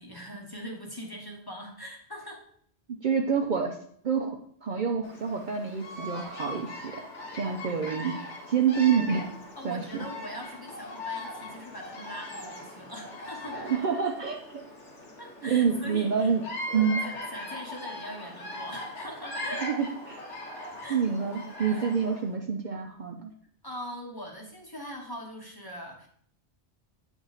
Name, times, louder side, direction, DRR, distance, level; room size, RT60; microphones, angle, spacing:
voice 1, 0.0-2.4 9.6-13.7 15.2-16.3 17.0-19.7 20.8-21.0 21.7-21.9 23.6-26.1, equal, 20° left, 0 dB, 0.9 m, -41 dB
voice 2, 3.0-3.8 4.0-4.4 4.6-7.0 7.3-8.2 8.5-9.3 9.6-9.8 13.5-14.6 15.4-16.4 16.7-17.1 19.6-20.2 20.9-23.3, right 6 dB, 55° right, 2 dB, 0.6 m, -27 dB
Bird vocalization bird call bird song, 5.0-22.3, left 1 dB, 85° left, 1.6 m, -40 dB
8.2 x 3.6 x 4.0 m, 0.62 s
omnidirectional pair, 1.2 m